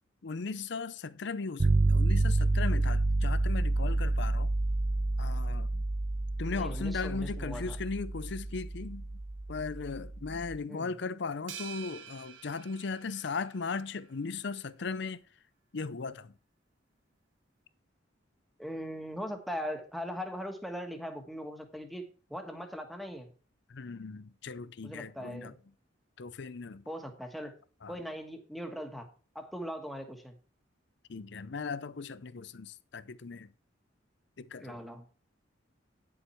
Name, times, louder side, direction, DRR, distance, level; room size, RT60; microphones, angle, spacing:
voice 1, 0.2-4.5 5.2-5.8 6.4-9.2 9.5-15.2 15.7-16.4 23.7-25.5 26.2-26.8 27.8-28.0 31.1-33.5 34.4-34.8, left 4 dB, 65° left, 0.6 m, -37 dB
sound 1, 1.6-10.6, right 2 dB, 45° right, 1.0 m, -29 dB
voice 2, 6.5-7.8 10.7-10.9 18.6-22.0 22.3-23.3 24.8-25.6 26.9-27.5 27.9-29.1 29.3-30.4 34.6-35.0, equal, ahead, 1.4 m, -40 dB
sound 2, 11.5-14.0, right 8 dB, 80° right, 1.3 m, -47 dB
10.0 x 7.1 x 4.5 m
head